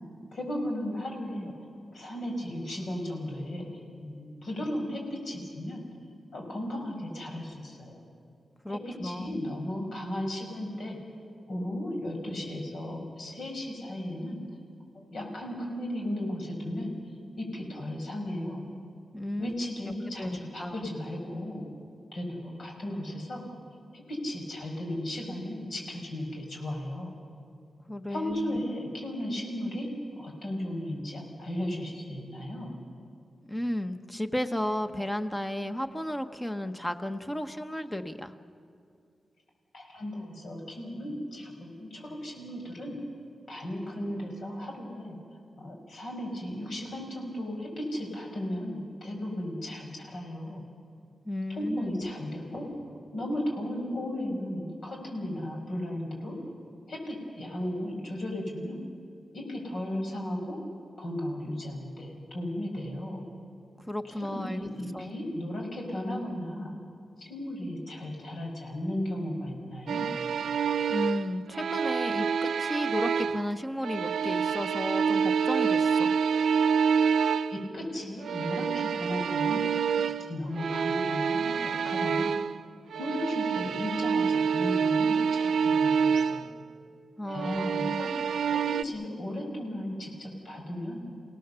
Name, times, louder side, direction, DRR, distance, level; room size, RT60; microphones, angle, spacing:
voice 1, 0.3-5.8 6.3-8.0 8.7-8.8 9.0-11.0 11.5-14.4 14.9-16.9 17.4-18.6 19.4-21.7 22.1-23.4 23.9-27.1 28.1-29.9 30.2-32.7 39.7-43.0 43.5-50.6 51.5-52.7 53.1-56.4 56.9-58.8 59.3-60.6 61.0-63.2 64.2-66.7 67.2-70.1 77.5-79.6 80.0-82.3 83.0-86.5 87.3-88.1 88.5-91.1, left 1 dB, 70° left, 0 dB, 5.6 m, -35 dB
voice 2, 8.6-9.4 19.1-19.7 20.2-20.9 27.9-28.6 33.5-38.3 51.2-52.1 63.9-65.2 70.9-76.2 87.2-88.0, left 1 dB, 10° left, 7 dB, 1.0 m, -34 dB
sound 1, 69.9-73.5 73.8-77.7 78.2-82.6 82.9-86.5 87.3-88.8, right 6 dB, 90° right, 0.5 m, -27 dB
29.0 x 17.5 x 7.0 m, 2.5 s
wide cardioid pair, 120°, 0 cm